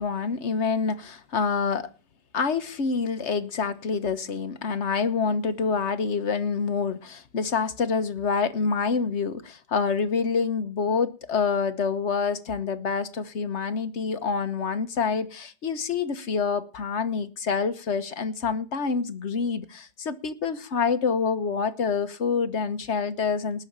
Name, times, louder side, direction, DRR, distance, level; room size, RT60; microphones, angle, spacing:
voice 1, 0.0-1.9 2.3-23.7, left 5 dB, 70° left, 1.5 m, -27 dB
19.0 x 6.6 x 7.3 m
omnidirectional pair, 1.2 m